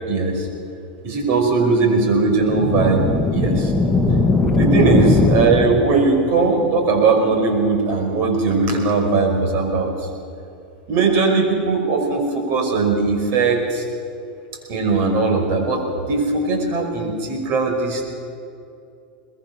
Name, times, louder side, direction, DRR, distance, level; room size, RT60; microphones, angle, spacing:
voice 1, 0.1-0.5 1.0-3.0 3.3-3.7 4.5-9.9 10.9-13.8 14.7-18.1, right 4 dB, 50° right, 3 dB, 5.4 m, -19 dB
sound 1, 2.3-6.2, left 3 dB, 5° left, 2.1 m, -19 dB
23.5 x 20.5 x 6.1 m, 2.6 s
hypercardioid pair, 115°, 5 cm